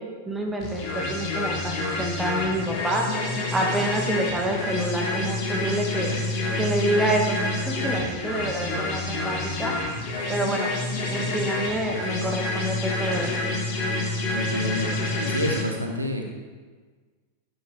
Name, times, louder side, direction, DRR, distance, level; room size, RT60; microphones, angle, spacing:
voice 1, 0.0-3.1 3.5-6.1 6.6-9.7 10.3-10.7 11.1-13.3, right 1 dB, 10° right, 1 dB, 2.0 m, -27 dB
sound 1, 0.6-15.6, left 2 dB, 45° left, 3.1 m, -28 dB
voice 2, 14.3-14.9 15.2-16.3, equal, 85° right, 3 dB, 1.3 m, -28 dB
12.5 x 9.6 x 4.8 m, 1.4 s
figure-of-eight pair, 90°, 0 cm